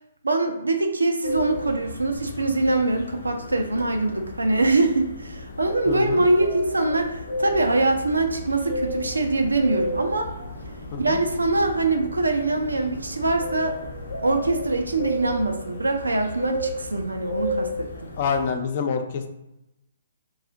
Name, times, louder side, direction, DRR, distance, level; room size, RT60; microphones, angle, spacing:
voice 1, 0.2-10.3 11.0-13.8 14.2-18.1, right 2 dB, 80° right, 5 dB, 0.4 m, -23 dB
sound 1, 1.2-18.5, left 1 dB, 70° left, 0.8 m, -34 dB
voice 2, 5.9-6.2 10.9-11.2 18.2-19.3, left 6 dB, 45° left, 6 dB, 0.4 m, -26 dB
sound 2, 7.5-15.5, right 1 dB, 10° right, 0.5 m, -44 dB
2.4 x 2.4 x 3.8 m, 0.92 s
figure-of-eight pair, 125°, 0 cm